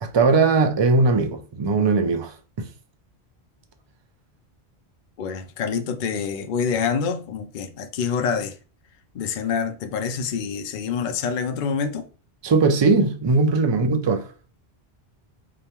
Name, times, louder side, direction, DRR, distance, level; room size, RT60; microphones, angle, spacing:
voice 1, 0.0-2.7 12.4-14.3, right 3 dB, 40° right, 0.4 m, -20 dB
voice 2, 5.2-8.6 9.1-12.1, left 6 dB, 60° left, 0.6 m, -26 dB
4.9 x 2.2 x 2.9 m
omnidirectional pair, 1.1 m